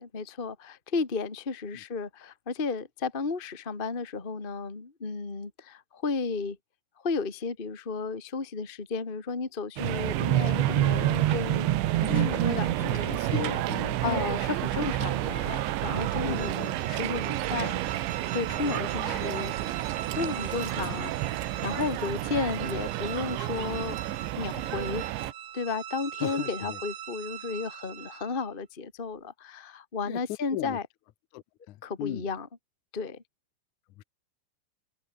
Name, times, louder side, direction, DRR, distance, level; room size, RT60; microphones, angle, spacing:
voice 1, 0.0-6.6 7.0-11.7 11.9-13.1 14.0-23.9 24.3-25.0 25.5-30.8 31.8-32.5 32.9-33.2, left 4 dB, 20° left, 1.4 m, -33 dB
sound 1, 9.8-25.3, right 15 dB, 85° right, 3.6 m, -29 dB
voice 2, 12.1-12.5 12.8-14.3 16.2-16.7 18.7-19.3 20.7-21.0 26.2-26.8 30.1-30.2 30.5-30.8 31.3-32.3 34.0-34.1, left 15 dB, 85° left, 1.7 m, -37 dB
sound 2, 15.1-28.5, right 10 dB, 60° right, 3.4 m, -42 dB
omnidirectional pair, 5.1 m